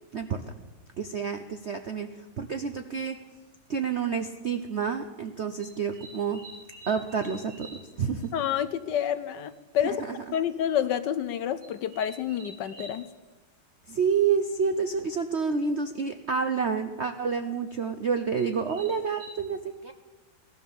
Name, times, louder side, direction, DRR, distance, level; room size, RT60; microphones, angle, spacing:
voice 1, 1.0-2.1 2.4-3.2 3.7-6.4 6.9-7.7 8.0-8.3 9.8-10.2 13.9-19.9, right 6 dB, 60° right, 7 dB, 0.7 m, -29 dB
sound 1, 1.6-1.7 3.1-3.2 3.9-4.1 5.6-7.9 8.2-8.3 8.6-8.7 9.0-9.1 9.4-9.5 10.3-10.5 11.6-13.0 15.1-15.2 15.4-15.8 17.7-17.8 18.4-19.3, right 2 dB, 80° right, 6.2 m, -48 dB
voice 2, 8.3-10.0 10.3-13.1, left 10 dB, 70° left, 13 dB, 1.2 m, -28 dB
17.0 x 12.0 x 7.1 m, 1.2 s
omnidirectional pair, 2.2 m